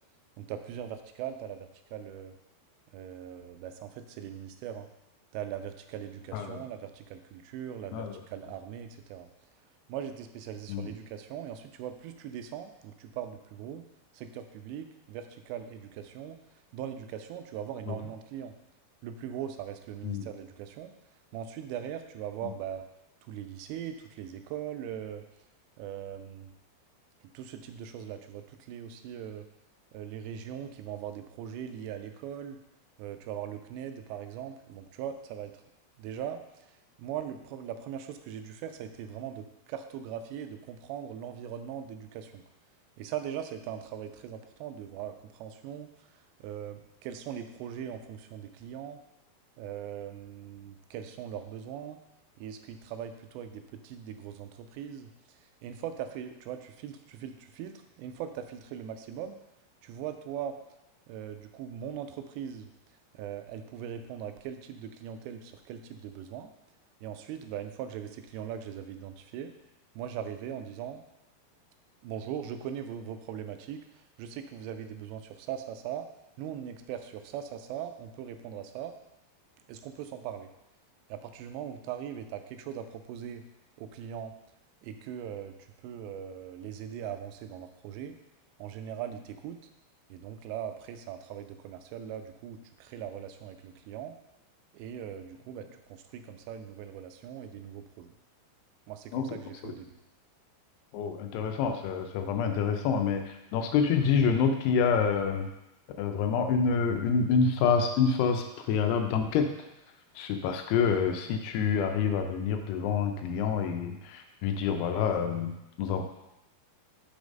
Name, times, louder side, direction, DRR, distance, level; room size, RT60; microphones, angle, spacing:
voice 1, 0.4-2.3 2.9-4.9 5.3-9.3 9.9-13.8 14.1-16.4 16.7-18.6 19.0-20.9 21.3-22.8 23.3-25.2 25.8-26.5 27.3-29.5 29.9-32.6 33.0-35.5 36.0-36.4 37.0-42.4 43.0-45.9 46.4-49.0 49.6-52.0 52.4-55.1 55.6-59.4 59.8-60.6 61.1-62.7 63.1-66.5 67.0-69.5 70.0-71.0 72.0-73.9 74.2-76.1 76.4-78.9 79.7-80.5 81.1-83.5 83.8-84.3 84.8-85.6 85.8-88.2 88.6-89.6 90.1-94.1 94.7-98.1 98.9-100.0, right 9 dB, 85° right, 8 dB, 2.7 m, -40 dB
voice 2, 6.3-6.6 7.9-8.1 10.7-10.9 17.9-18.0 20.0-20.3 99.1-99.4 99.6-99.7 100.9-105.5 106.0-109.5 110.2-116.0, left 6 dB, 80° left, 5 dB, 2.5 m, -27 dB
6.2 x 5.0 x 5.2 m, 0.91 s
omnidirectional pair, 5.0 m